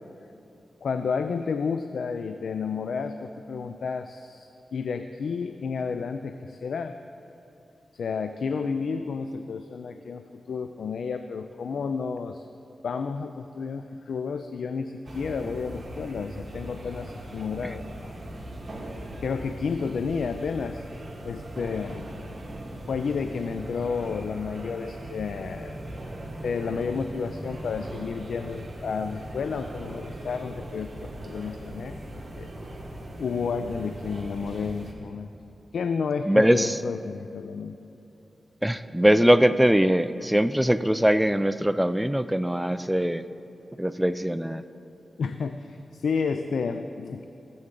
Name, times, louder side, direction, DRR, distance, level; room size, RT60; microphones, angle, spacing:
voice 1, 0.8-6.9 7.9-12.4 12.8-18.2 19.2-20.8 21.2-22.1 22.9-25.8 26.4-32.5 33.2-35.3 35.7-37.8 45.2-47.2, left 5 dB, 80° left, 8 dB, 0.3 m, -31 dB
sound 1, 15.1-34.9, right 1 dB, 45° right, 1.5 m, -39 dB
voice 2, 36.3-36.8 38.6-43.2 43.8-44.6, equal, 5° right, 12 dB, 0.4 m, -21 dB
14.5 x 7.8 x 3.8 m, 2.8 s
cardioid pair, 65°, 0 cm